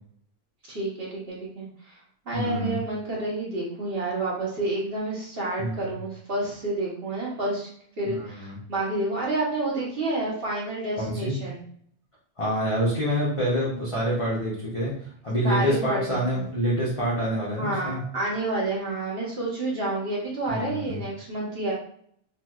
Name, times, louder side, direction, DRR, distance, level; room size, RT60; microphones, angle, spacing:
voice 1, 0.7-7.7 8.0-11.6 15.4-16.4 17.6-21.7, right 2 dB, 50° right, -5 dB, 1.1 m, -29 dB
voice 2, 2.3-2.8 5.6-5.8 8.0-8.6 11.0-11.4 12.4-18.0 20.5-21.0, equal, 35° left, -6 dB, 0.6 m, -27 dB
3.0 x 2.9 x 2.3 m, 0.63 s
omnidirectional pair, 1.3 m